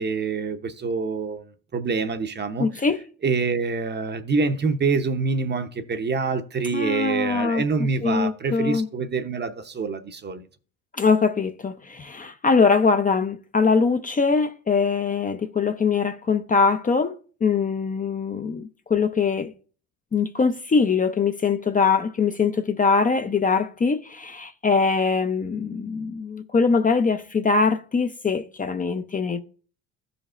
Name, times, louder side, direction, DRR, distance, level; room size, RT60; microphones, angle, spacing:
voice 1, 0.0-1.4 1.7-2.8 3.2-10.4, right 4 dB, 30° right, 0.8 m, -26 dB
voice 2, 2.6-3.0 6.7-7.6 8.0-8.9 11.0-17.1 17.4-19.5 20.1-29.4, left 5 dB, 20° left, 0.6 m, -22 dB
13.5 x 5.1 x 2.5 m
supercardioid pair, 85°, 37 cm